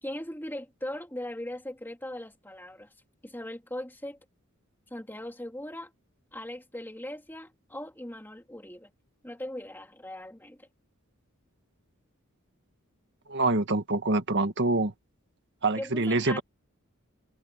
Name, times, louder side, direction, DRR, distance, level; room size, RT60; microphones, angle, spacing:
voice 1, 0.0-2.9 3.2-4.2 4.9-5.9 6.3-8.9 9.2-10.7 15.8-16.4, left 1 dB, 10° left, 3.0 m, -39 dB
voice 2, 13.3-14.9 15.6-16.4, right 2 dB, 55° right, 1.7 m, -25 dB
head